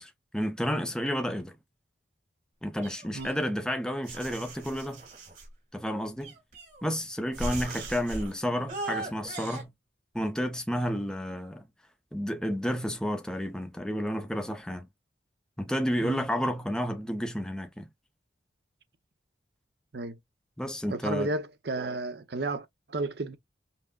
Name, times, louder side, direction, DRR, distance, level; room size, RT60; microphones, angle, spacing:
voice 1, 0.0-1.6 2.6-5.1 5.7-6.4 6.8-9.7 10.1-11.7 12.1-14.9 15.6-17.9 20.6-21.3, equal, 5° left, 0.6 m, -31 dB
sound 1, 2.8-3.7 4.1-5.5 6.2-6.9 7.3-8.3 8.7-9.6, right 2 dB, 45° right, 1.7 m, -38 dB
voice 2, 20.9-23.4, right 2 dB, 60° right, 0.7 m, -33 dB
5.6 x 2.1 x 2.3 m
head